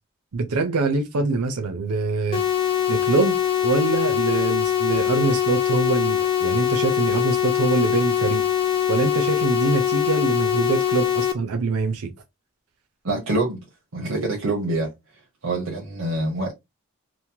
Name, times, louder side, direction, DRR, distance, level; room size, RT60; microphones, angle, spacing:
voice 1, 0.3-2.4 2.9-3.4 3.6-8.4 8.9-12.1, right 4 dB, 90° right, 0.5 m, -24 dB
sound 1, 2.3-11.3, left 10 dB, 25° left, 0.3 m, -22 dB
voice 2, 13.0-13.6 13.9-14.9 15.4-16.5, right 2 dB, 75° right, 0.8 m, -25 dB
3.0 x 2.1 x 2.7 m
head